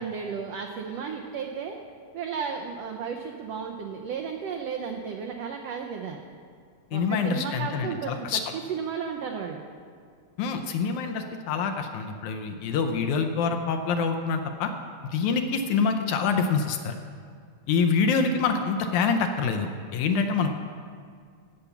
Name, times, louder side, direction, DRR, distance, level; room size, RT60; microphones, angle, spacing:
voice 1, 0.0-1.8 2.1-6.2 6.9-9.6, right 6 dB, 85° right, 2 dB, 1.4 m, -34 dB
voice 2, 6.9-8.4 10.4-14.7 15.1-17.0 17.7-20.5, left 5 dB, 75° left, 6 dB, 2.0 m, -26 dB
15.5 x 5.8 x 7.0 m, 2.1 s
omnidirectional pair, 3.8 m